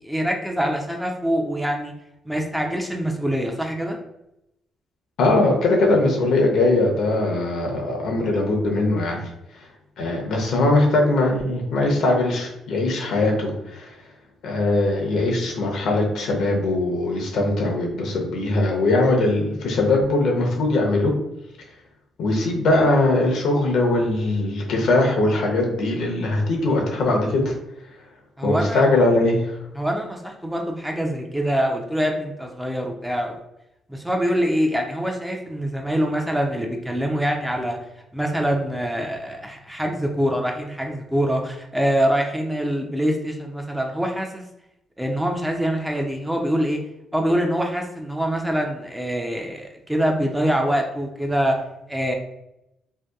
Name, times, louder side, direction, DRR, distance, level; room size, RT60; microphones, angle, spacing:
voice 1, 0.0-1.9 2.3-4.0 28.4-28.8 29.8-33.4 33.9-37.8 38.1-44.4 45.0-46.8 47.1-51.6 51.9-52.1, equal, 5° right, 2 dB, 0.4 m, -24 dB
voice 2, 5.2-9.7 10.0-14.1 14.4-21.2 22.2-27.5 27.9-28.1 28.4-29.6, left 2 dB, 75° left, 0 dB, 0.6 m, -21 dB
2.7 x 2.1 x 2.3 m, 0.85 s
cardioid pair, 90°, 0 cm